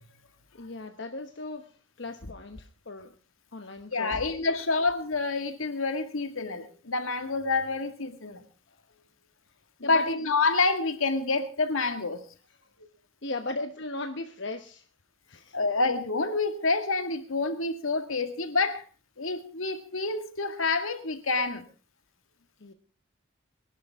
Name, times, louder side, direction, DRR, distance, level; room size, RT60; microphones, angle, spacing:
voice 1, 0.5-3.1 3.5-4.2 8.7-8.8 9.8-10.1 13.2-14.9 15.3-15.6 22.6-22.7, left 2 dB, 60° left, 6 dB, 1.1 m, -37 dB
voice 2, 3.9-8.4 9.9-12.2 15.5-18.8 19.2-21.6, left 3 dB, 90° left, 8 dB, 1.9 m, -28 dB
24.0 x 11.5 x 3.6 m, 0.38 s
head